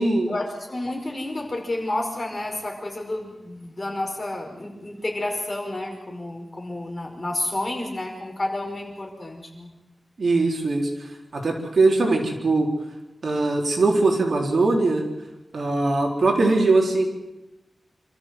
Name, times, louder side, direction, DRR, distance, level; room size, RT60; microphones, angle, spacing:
voice 1, 0.3-9.7, left 1 dB, 30° left, 1 dB, 5.4 m, -30 dB
voice 2, 10.2-12.7 13.2-15.0 15.5-17.1, right 3 dB, 60° right, 1 dB, 4.1 m, -21 dB
27.0 x 14.0 x 7.8 m, 1.0 s
wide cardioid pair, 110°, 0 cm